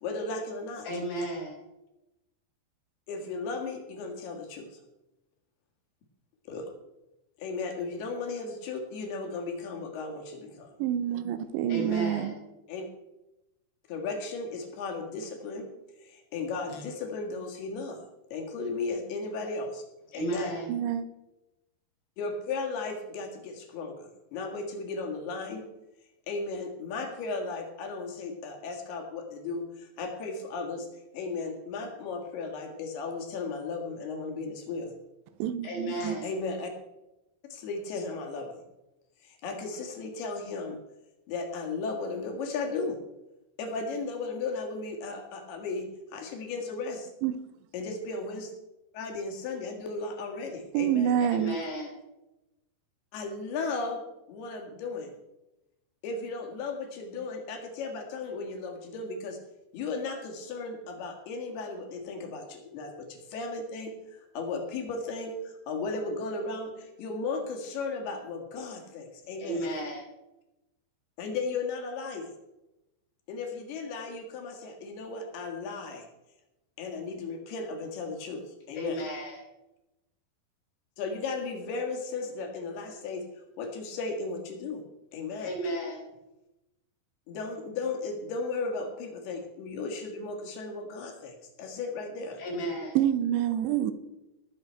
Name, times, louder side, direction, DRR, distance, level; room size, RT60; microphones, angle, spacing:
voice 1, 0.0-0.9 3.1-4.7 6.5-6.7 7.4-10.7 12.7-12.9 13.9-15.7 16.0-18.0 18.3-19.8 20.1-20.5 22.2-25.6 26.3-30.9 31.1-34.9 36.2-36.7 37.5-38.6 39.2-40.8 41.3-43.0 43.6-45.9 46.1-47.1 47.7-48.5 48.9-51.2 53.1-54.0 54.3-55.1 56.0-59.4 59.7-69.6 71.2-72.3 73.3-76.1 76.8-79.0 81.0-83.2 83.6-84.8 85.1-85.5 87.3-92.4, left 3 dB, 65° left, 3.6 m, -35 dB
voice 2, 0.8-1.6 11.7-12.4 20.1-20.8 35.6-36.3 51.2-51.9 69.4-70.0 78.7-79.4 85.4-86.0 92.4-93.0, right 1 dB, 90° left, 7.1 m, -33 dB
voice 3, 10.8-12.3 20.7-21.1 35.4-36.2 47.2-47.4 50.7-51.6 93.0-93.9, right 10 dB, 80° right, 2.8 m, -27 dB
19.5 x 7.3 x 4.5 m
omnidirectional pair, 5.2 m